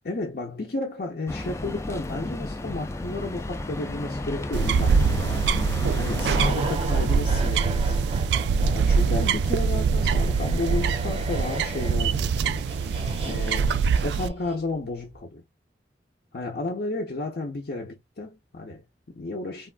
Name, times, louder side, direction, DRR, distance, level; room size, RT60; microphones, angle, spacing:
voice 1, 0.0-8.1 8.7-12.6 13.0-13.8 14.0-15.4 16.3-19.7, left 2 dB, 60° left, 0.6 m, -33 dB
sound 1, 1.3-6.5, left 2 dB, 15° left, 0.3 m, -33 dB
sound 2, 4.5-14.3, right 5 dB, 75° right, 0.3 m, -24 dB
sound 3, 6.2-14.7 15.0-15.2, right 1 dB, 35° right, 0.7 m, -34 dB
3.5 x 2.2 x 2.3 m
head